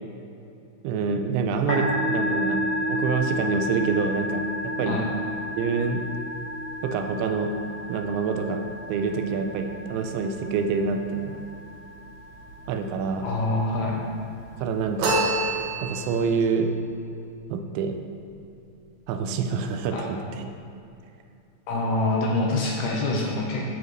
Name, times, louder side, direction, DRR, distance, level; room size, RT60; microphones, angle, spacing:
voice 1, 0.8-5.0 5.6-6.0 6.8-7.6 7.9-8.6 8.9-11.4 12.7-13.3 14.6-15.2 15.8-16.7 17.5-18.0 19.1-20.5, right 5 dB, 85° right, 6 dB, 2.9 m, -26 dB
Musical instrument, 1.5-16.3, left 1 dB, 40° left, 2.5 m, -32 dB
voice 2, 13.2-14.0 19.9-20.1 21.7-23.6, left 2 dB, 75° left, -2 dB, 2.5 m, -25 dB
sound 1, 15.0-16.3, right 2 dB, 65° right, 2.4 m, -25 dB
14.0 x 4.9 x 3.1 m, 2.6 s
omnidirectional pair, 5.1 m